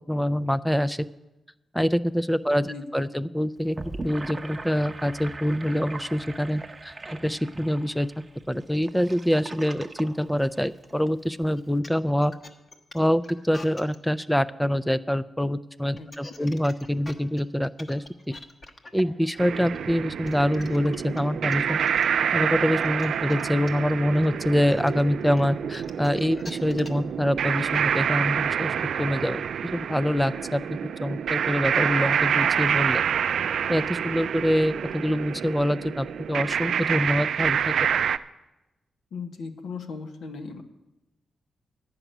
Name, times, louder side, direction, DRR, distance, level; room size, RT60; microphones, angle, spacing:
voice 1, 0.1-1.0 1.7-3.8 4.0-6.9 7.2-8.1 8.5-12.3 12.9-18.0 18.9-21.8 22.3-29.4 29.7-33.0 33.7-37.7, equal, 5° left, 14 dB, 0.4 m, -25 dB
voice 2, 2.7-3.1 16.0-16.5 39.1-40.6, left 4 dB, 85° left, 6 dB, 1.1 m, -38 dB
Gurgling / Sink (filling or washing), 3.6-11.1, right 2 dB, 25° right, 0.8 m, -40 dB
sound 1, 11.6-14.0 15.8-22.0 22.5-27.1, left 2 dB, 35° left, 1.0 m, -44 dB
sound 2, 19.4-38.2, right 8 dB, 80° right, 0.3 m, -27 dB
11.0 x 6.0 x 9.1 m, 1.0 s
cardioid pair, 105°, 0 cm